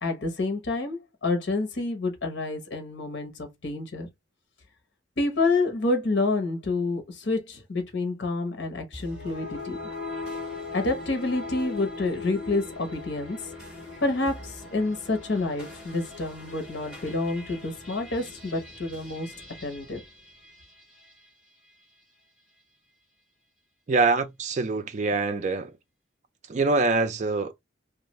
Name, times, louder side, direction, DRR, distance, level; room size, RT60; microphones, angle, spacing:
voice 1, 0.0-4.1 5.2-9.8 10.7-13.4 14.0-19.3 19.6-20.0, left 3 dB, 70° left, 0.9 m, -28 dB
sound 1, 8.9-21.2, left 3 dB, 5° right, 1.6 m, -40 dB
voice 2, 23.9-25.7 26.5-27.5, right 3 dB, 40° right, 0.4 m, -24 dB
2.5 x 2.4 x 3.0 m
head